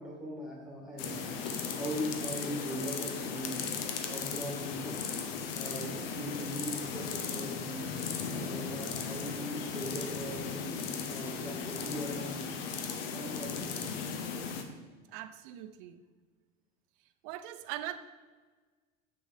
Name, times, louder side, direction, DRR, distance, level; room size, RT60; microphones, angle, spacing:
voice 1, 0.0-3.7 4.1-5.0 5.5-7.9 8.3-10.7 11.1-12.5 13.1-14.1, equal, ahead, -1 dB, 2.0 m, -40 dB
sound 1, 1.0-14.6, left 6 dB, 80° left, 1.0 m, -37 dB
voice 2, 15.1-16.0 17.2-18.0, right 13 dB, 65° right, 11 dB, 0.6 m, -41 dB
6.8 x 6.2 x 4.1 m, 1.4 s
supercardioid pair, 130°, 29 cm